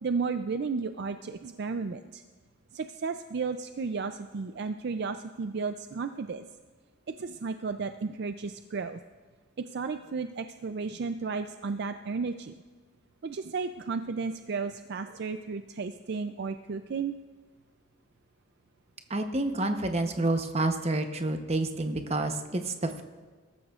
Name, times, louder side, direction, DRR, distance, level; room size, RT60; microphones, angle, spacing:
voice 1, 0.0-2.2 2.7-6.5 7.1-9.0 9.7-12.6 13.2-17.1, right 4 dB, 55° right, 9 dB, 0.4 m, -33 dB
voice 2, 19.1-23.0, right 2 dB, 30° right, 6 dB, 0.8 m, -29 dB
21.0 x 13.0 x 2.4 m, 1.4 s
head